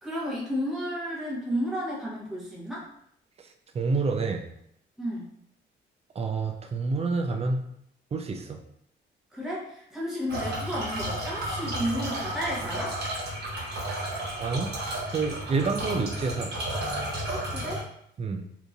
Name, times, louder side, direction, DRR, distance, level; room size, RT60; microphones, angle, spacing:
voice 1, 0.0-2.9 5.0-5.3 9.3-13.0 17.3-17.8, equal, ahead, -7 dB, 1.0 m, -32 dB
voice 2, 3.7-4.5 6.2-7.6 8.1-8.6 14.4-14.7 15.1-16.6 18.2-18.4, right 4 dB, 30° right, 4 dB, 0.4 m, -28 dB
sound 1, 10.3-17.8, right 1 dB, 55° right, 1.1 m, -32 dB
2.9 x 2.6 x 2.4 m, 0.71 s
cardioid pair, 90°, 20 cm